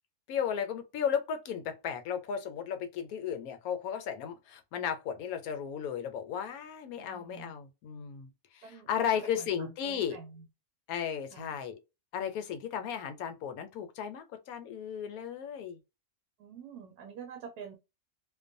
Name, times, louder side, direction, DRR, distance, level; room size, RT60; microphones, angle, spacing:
voice 1, 0.3-10.2 10.9-11.7 12.1-15.8, left 8 dB, 75° left, 1.0 m, -35 dB
voice 2, 7.0-7.5 8.6-10.5 11.3-11.5 16.4-17.8, right 6 dB, 80° right, 1.1 m, -47 dB
2.5 x 2.2 x 2.5 m
omnidirectional pair, 1.6 m